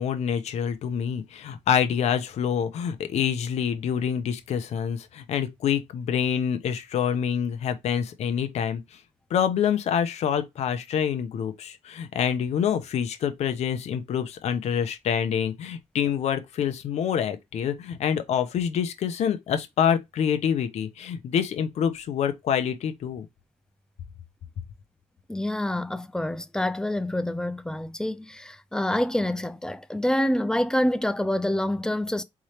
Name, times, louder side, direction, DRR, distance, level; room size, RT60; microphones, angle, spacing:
voice 1, 0.0-8.8 9.3-23.3, left 8 dB, 70° left, 0.9 m, -26 dB
voice 2, 25.3-32.2, left 1 dB, 5° left, 0.5 m, -27 dB
4.3 x 3.6 x 3.2 m
cardioid pair, 110°, 11 cm